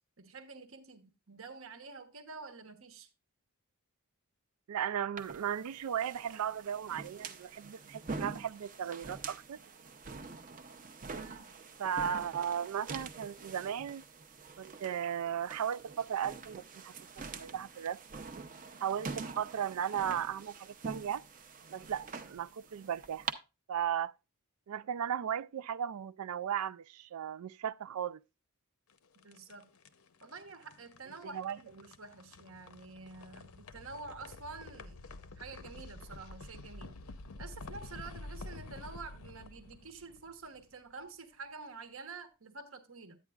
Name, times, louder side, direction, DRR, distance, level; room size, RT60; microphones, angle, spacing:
voice 1, 0.2-3.1 11.1-11.6 29.1-29.7 30.2-35.0 35.3-37.0 37.4-43.2, right 4 dB, 65° right, 1.2 m, -48 dB
voice 2, 4.7-9.6 11.8-14.0 14.6-16.9 17.3-18.0 18.8-21.2 21.7-23.3 23.7-24.1 24.7-28.2 31.3-31.6, right 9 dB, 80° right, 0.4 m, -36 dB
sound 1, 5.2-23.3, right 4 dB, 35° right, 0.7 m, -45 dB
sound 2, 28.9-41.0, left 2 dB, 75° left, 0.7 m, -49 dB
10.5 x 8.9 x 2.4 m
head